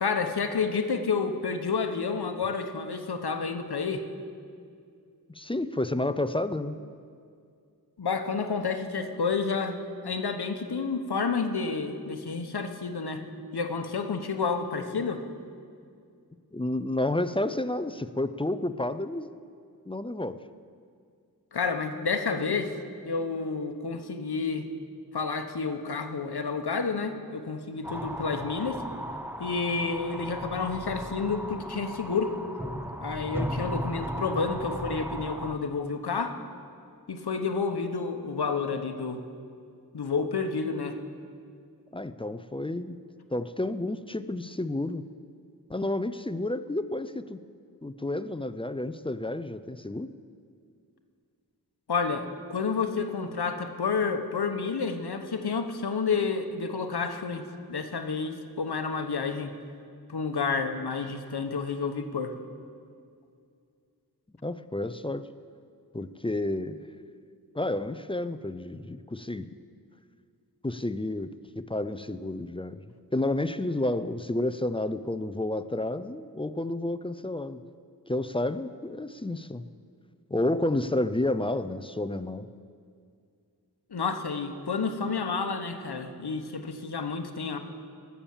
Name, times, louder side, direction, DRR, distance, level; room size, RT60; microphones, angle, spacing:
voice 1, 0.0-4.0 8.0-13.3 13.5-15.2 21.5-22.7 23.0-24.7 25.1-28.8 29.4-32.3 33.0-36.4 37.1-39.2 39.9-41.0 51.9-59.5 60.1-62.3 83.9-87.6, left 5 dB, 85° left, 7 dB, 1.0 m, -30 dB
voice 2, 5.3-6.8 16.5-19.3 19.9-20.4 41.9-43.0 43.3-45.0 45.7-47.4 47.8-50.1 64.4-65.2 65.9-66.8 67.5-69.5 70.6-72.8 73.1-77.6 78.1-79.6 80.3-82.5, left 1 dB, 15° left, 12 dB, 0.4 m, -30 dB
sound 1, 27.8-35.5, equal, 5° right, 0.8 m, -36 dB
19.0 x 7.1 x 7.2 m, 2.3 s
wide cardioid pair, 70°, 38 cm